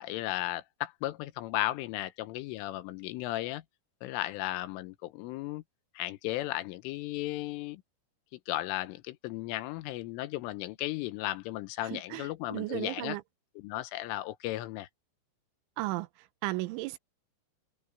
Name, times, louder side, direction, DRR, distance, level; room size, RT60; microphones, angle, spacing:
voice 1, 0.0-3.6 4.0-5.6 5.9-7.8 8.3-13.2 13.6-14.9, left 16 dB, 85° left, 3.4 m, -35 dB
voice 2, 11.8-13.2 15.8-17.0, right 19 dB, 85° right, 3.1 m, -35 dB
omnidirectional pair, 5.7 m